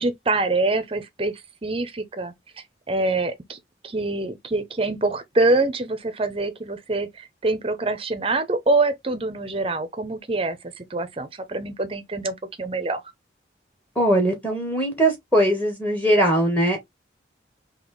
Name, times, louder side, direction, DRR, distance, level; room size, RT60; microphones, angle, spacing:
voice 1, 0.0-1.3 1.6-2.3 2.9-3.6 3.8-13.0, right 2 dB, 30° right, 0.6 m, -25 dB
voice 2, 13.9-16.8, right 1 dB, 10° left, 1.2 m, -20 dB
4.0 x 2.8 x 3.1 m
head